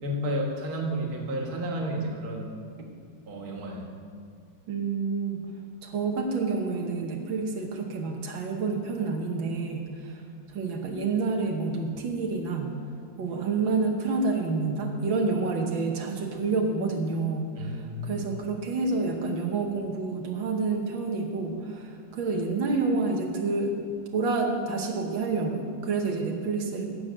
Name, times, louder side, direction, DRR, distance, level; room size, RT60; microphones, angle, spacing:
voice 1, 0.0-2.5 3.3-3.9 17.6-18.2, equal, 55° right, 0 dB, 2.0 m, -31 dB
voice 2, 4.7-5.5 5.8-10.2 10.5-12.7 13.2-23.7 24.1-26.8, right 4 dB, 85° right, 1 dB, 1.9 m, -28 dB
16.5 x 6.3 x 6.4 m, 2.2 s
omnidirectional pair, 2.1 m